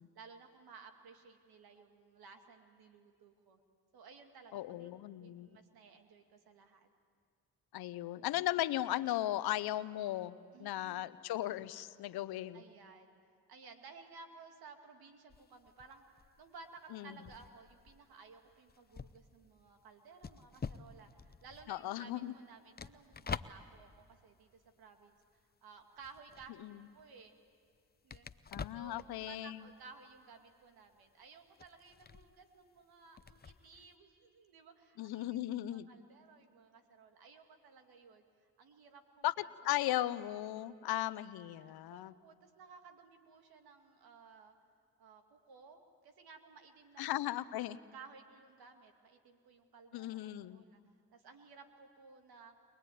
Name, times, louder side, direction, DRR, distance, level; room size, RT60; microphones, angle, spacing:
voice 1, 0.1-3.6 3.9-4.9 5.2-6.9 10.5-11.1 12.5-13.1 13.5-16.0 16.4-25.2 25.6-26.6 26.9-27.4 28.0-28.3 28.7-38.2 38.6-39.5 41.9-44.6 45.0-47.0 47.9-50.8 51.1-52.5, right 5 dB, 75° right, 5 dB, 2.3 m, -57 dB
voice 2, 4.5-5.5 7.7-12.6 16.9-17.2 21.7-22.3 26.6-26.8 28.5-29.7 35.0-35.9 39.2-39.3 39.6-42.1 47.0-47.8 49.9-50.6, left 14 dB, 80° left, 15 dB, 0.8 m, -37 dB
sound 1, 15.3-25.5 25.8-33.9, left 5 dB, 25° left, 0.7 m, -48 dB
23.5 x 20.5 x 9.3 m, 2.1 s
supercardioid pair, 60°, 37 cm